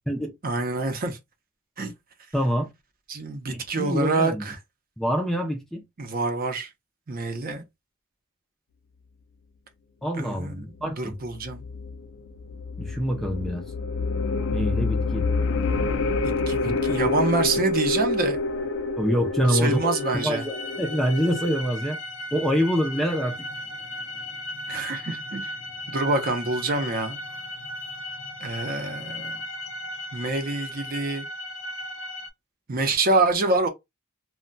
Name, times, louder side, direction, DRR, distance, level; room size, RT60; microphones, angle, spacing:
voice 1, 0.4-1.2 1.8-1.9 3.1-4.6 6.0-6.7 7.1-7.6 10.1-11.6 16.2-18.4 19.4-20.4 24.7-25.5 25.9-27.2 28.4-29.4 30.1-31.3 32.7-33.7, right 3 dB, 45° right, 0.6 m, -26 dB
voice 2, 2.3-2.7 3.5-4.4 5.0-5.8 10.0-11.1 12.8-13.6 14.5-15.3 16.7-16.8 19.0-22.0 22.3-23.5, equal, ahead, 0.4 m, -26 dB
sound 1, 11.3-21.6, left 3 dB, 60° left, 0.5 m, -27 dB
sound 2, 19.6-32.3, left 1 dB, 80° left, 0.9 m, -36 dB
2.2 x 2.2 x 3.8 m
head